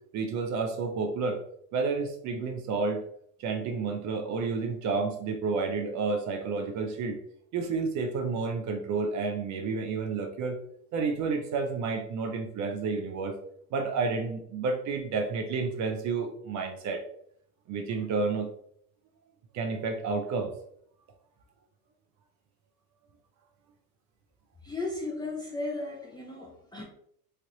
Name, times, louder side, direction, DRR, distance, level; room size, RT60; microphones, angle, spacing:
voice 1, 0.1-1.4 1.7-3.0 3.4-7.2 7.5-10.6 10.9-13.3 13.7-17.0 17.7-18.5 19.5-20.5, right 4 dB, 35° right, 4 dB, 0.6 m, -30 dB
voice 2, 24.6-26.8, left 2 dB, 10° left, -3 dB, 0.4 m, -35 dB
3.2 x 2.4 x 2.9 m, 0.69 s
hypercardioid pair, 90°, 50 cm